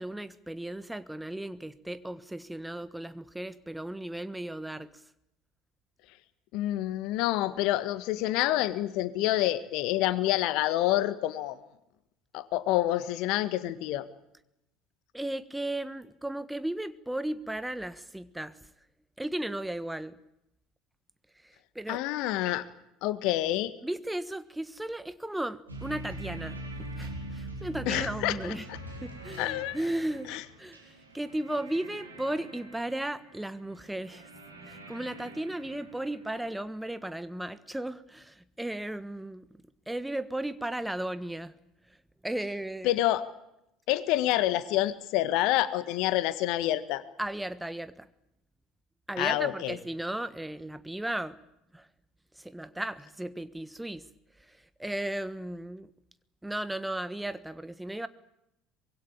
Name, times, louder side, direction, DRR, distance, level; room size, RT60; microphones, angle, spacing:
voice 1, 0.0-5.0 15.1-18.6 19.2-20.2 21.4-22.0 23.8-28.7 29.0-34.3 34.6-39.5 39.9-41.5 42.2-42.9 47.2-48.1 49.1-51.4 51.7-51.9 52.4-54.0 54.5-55.9 56.4-58.1, right 1 dB, 5° right, 14 dB, 1.4 m, -35 dB
voice 2, 6.5-11.6 12.3-14.0 21.9-22.6 23.0-23.7 27.9-28.5 29.4-29.8 30.3-30.4 42.8-43.2 43.9-47.0 49.2-49.8, left 15 dB, 60° left, 14 dB, 1.7 m, -27 dB
sound 1, 25.7-36.6, right 1 dB, 85° right, 5.0 m, -43 dB
24.5 x 22.0 x 8.8 m, 0.84 s
figure-of-eight pair, 65°, 0 cm